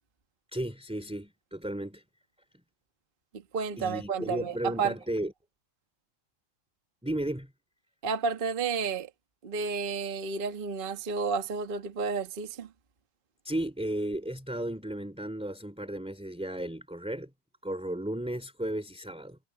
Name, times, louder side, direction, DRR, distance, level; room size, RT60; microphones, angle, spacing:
voice 1, 0.5-2.0 3.8-5.3 7.0-7.5 13.4-17.3 17.6-19.4, right 1 dB, ahead, 2.9 m, -34 dB
voice 2, 3.5-4.9 8.0-9.1 9.4-12.7, right 5 dB, 70° right, 0.5 m, -31 dB
omnidirectional pair, 3.7 m